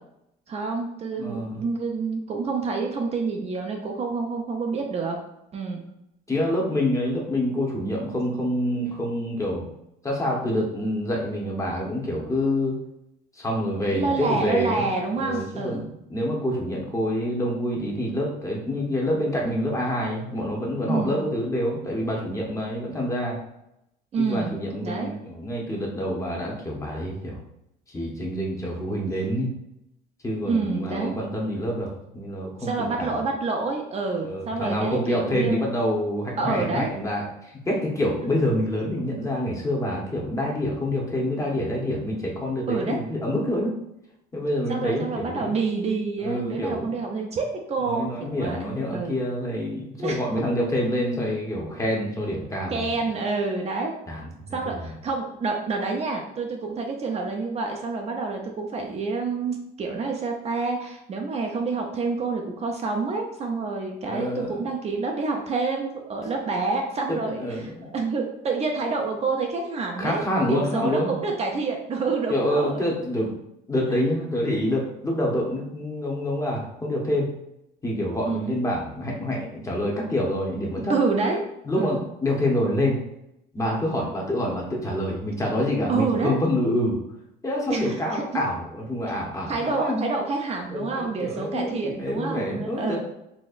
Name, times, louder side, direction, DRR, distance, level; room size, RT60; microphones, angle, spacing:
voice 1, 0.5-5.2 5.5-5.8 13.9-15.9 20.9-21.2 24.1-24.6 24.8-25.1 30.4-31.2 32.6-35.6 36.4-36.9 38.2-38.3 42.7-43.0 44.7-49.2 50.0-50.2 52.7-53.9 54.5-72.8 78.2-78.5 80.9-81.4 81.7-82.1 85.9-86.4 87.7-88.2 89.5-93.0, right 4 dB, 40° right, 1 dB, 0.5 m, -28 dB
voice 2, 1.2-1.6 6.3-9.6 10.0-12.8 13.3-14.8 15.2-23.4 24.2-27.4 27.9-29.5 30.2-33.1 34.2-43.7 44.3-45.6 46.2-47.0 47.8-53.0 54.1-54.9 64.0-64.6 67.1-67.9 70.0-71.1 72.3-73.3 73.7-77.3 77.8-80.9 81.6-83.0 83.5-87.0 87.4-90.0 90.7-93.0, left 1 dB, 20° left, -2 dB, 0.9 m, -27 dB
4.1 x 2.9 x 2.4 m, 0.83 s
cardioid pair, 110°, 17 cm